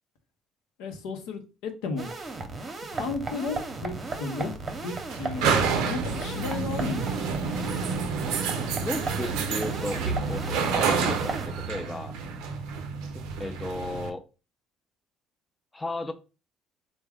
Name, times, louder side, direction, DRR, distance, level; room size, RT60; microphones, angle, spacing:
voice 1, 0.8-2.1 2.9-4.5 4.8-7.5, left 4 dB, 90° left, 0.6 m, -34 dB
sound 1, 2.0-11.5, right 3 dB, 35° right, 0.7 m, -36 dB
sound 2, 3.5-14.1, right 5 dB, 90° right, 0.4 m, -29 dB
voice 2, 8.8-12.2 13.4-14.2 15.7-16.1, left 2 dB, 15° left, 0.4 m, -34 dB
3.4 x 2.1 x 3.4 m
cardioid pair, 90°, 0 cm